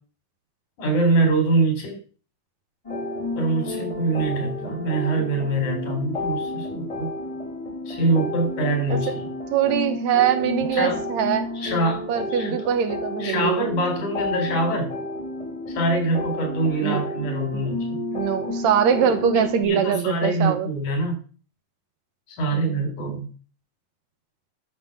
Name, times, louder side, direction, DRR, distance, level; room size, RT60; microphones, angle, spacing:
voice 1, 0.8-2.0 3.3-7.1 7.9-9.1 10.7-11.0 11.5-12.5 13.2-14.9 15.7-18.0 19.0-21.2 22.3-23.3, right 2 dB, 80° left, 4 dB, 5.1 m, -24 dB
sound 1, 2.8-19.6, left 2 dB, 15° left, 1.9 m, -31 dB
voice 2, 9.5-11.5 12.1-13.7 16.8-17.0 17.5-17.6 18.1-20.7 22.5-22.8, right 8 dB, 70° right, 9 dB, 2.4 m, -23 dB
11.0 x 6.0 x 7.0 m, 0.39 s
omnidirectional pair, 3.4 m